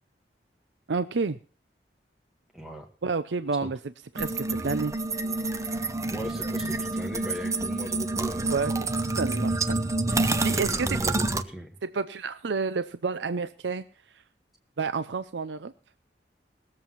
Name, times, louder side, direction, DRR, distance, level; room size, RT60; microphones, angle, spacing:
voice 1, 0.9-1.4 3.0-3.8 4.1-4.9 8.5-9.6 10.1-11.0 11.8-13.8 14.8-15.7, right 4 dB, 85° right, 12 dB, 0.6 m, -30 dB
voice 2, 2.5-2.9 3.6-3.7 6.1-8.6 10.6-11.8, equal, ahead, 1 dB, 1.3 m, -38 dB
sound 1, 4.2-11.4, right 2 dB, 20° right, 0.7 m, -28 dB
19.5 x 7.6 x 5.8 m, 0.38 s
head